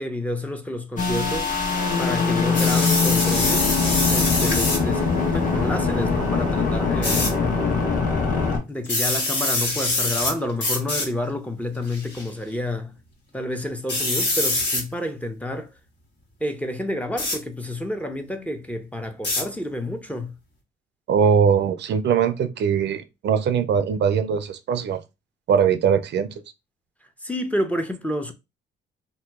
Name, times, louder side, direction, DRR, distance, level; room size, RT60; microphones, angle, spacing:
voice 1, 0.0-1.5 2.0-3.7 4.1-7.3 8.7-12.9 13.3-15.7 16.4-20.3 27.2-28.3, left 1 dB, 5° left, 0.6 m, -29 dB
sound 1, 1.0-8.6, left 4 dB, 40° left, 1.4 m, -22 dB
sound 2, 2.5-4.8 7.0-7.3 8.8-10.3 10.6-11.1 11.9-12.2 13.9-14.8 17.2-17.4 19.2-19.4, left 2 dB, 65° left, 1.6 m, -24 dB
voice 2, 21.1-25.0 25.5-26.3, right 7 dB, 60° right, 0.5 m, -21 dB
2.8 x 2.2 x 3.4 m
cardioid pair, 90°, 20 cm